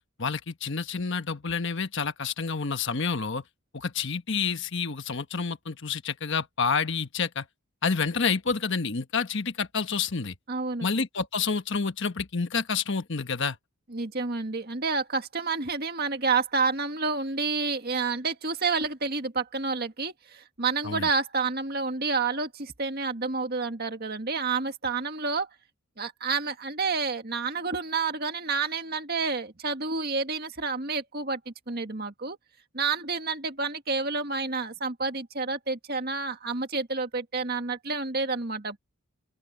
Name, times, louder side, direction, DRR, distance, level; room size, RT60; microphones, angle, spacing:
voice 1, 0.2-3.4 3.7-7.5 7.8-10.4 10.8-13.6 20.8-21.1, left 5 dB, 55° left, 1.2 m, -29 dB
voice 2, 10.5-10.9 13.9-25.5 26.0-32.4 32.7-38.8, right 4 dB, 45° right, 1.9 m, -29 dB
open air
head